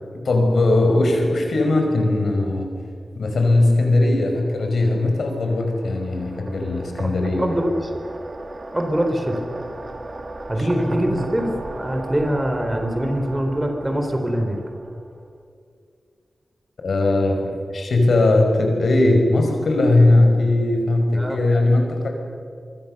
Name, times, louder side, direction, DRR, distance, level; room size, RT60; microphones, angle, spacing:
voice 1, 0.3-2.7 3.1-7.5 10.6-10.7 11.1-11.2 16.8-22.1, left 2 dB, 75° left, 2 dB, 5.4 m, -19 dB
sound 1, 4.6-15.3, right 2 dB, 50° right, 2.9 m, -36 dB
voice 2, 7.4-7.9 8.7-9.4 10.5-11.5 11.8-14.6 21.2-21.4, equal, 15° right, 5 dB, 4.0 m, -23 dB
25.0 x 24.0 x 6.8 m, 2.3 s
wide cardioid pair, 95°, 0 cm